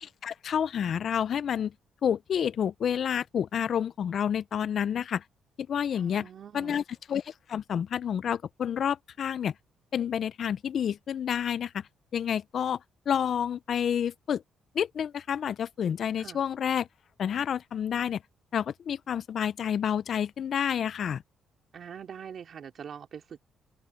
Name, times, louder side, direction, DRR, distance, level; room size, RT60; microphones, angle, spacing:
voice 1, 0.0-1.7 2.0-5.2 5.6-6.3 6.5-6.8 7.1-9.5 9.9-11.8 12.1-12.8 13.1-14.4 14.7-16.9 17.2-18.2 18.5-21.2, left 8 dB, 60° left, 0.5 m, -29 dB
voice 2, 5.9-6.8 16.2-16.4 21.7-23.4, right 8 dB, 55° right, 3.8 m, -44 dB
open air
cardioid pair, 90°, 0 cm